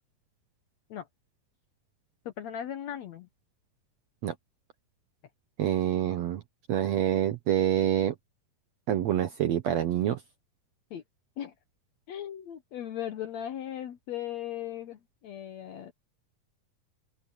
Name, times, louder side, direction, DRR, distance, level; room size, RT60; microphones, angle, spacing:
voice 1, 2.3-3.3 10.9-11.0 11.4-11.5 12.1-15.9, left 10 dB, 65° left, 1.8 m, -37 dB
voice 2, 5.6-6.4 6.7-8.1 8.9-10.2, right 11 dB, 70° right, 1.7 m, -26 dB
open air
omnidirectional pair, 4.1 m